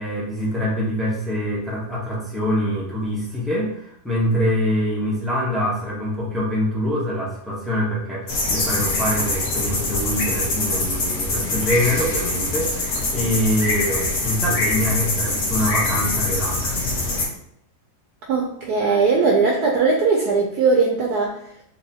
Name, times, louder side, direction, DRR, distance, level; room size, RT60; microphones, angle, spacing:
voice 1, 0.0-16.9, equal, ahead, -6 dB, 0.3 m, -24 dB
sound 1, 8.3-17.3, left 2 dB, 55° left, 1.2 m, -24 dB
voice 2, 18.3-21.4, right 4 dB, 70° right, -1 dB, 1.0 m, -19 dB
4.0 x 2.9 x 2.7 m, 0.74 s
omnidirectional pair, 1.9 m